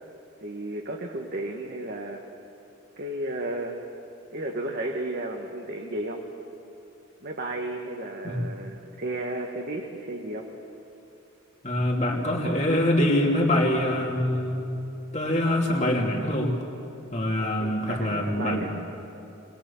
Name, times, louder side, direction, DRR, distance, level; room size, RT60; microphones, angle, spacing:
voice 1, 0.4-2.2 3.0-3.8 4.3-6.2 7.2-10.5 17.6-18.7, right 1 dB, 50° right, 1 dB, 1.5 m, -33 dB
voice 2, 11.6-14.7 15.1-16.6 17.1-18.7, left 1 dB, 35° left, -1 dB, 2.9 m, -24 dB
22.0 x 20.5 x 7.1 m, 2.8 s
head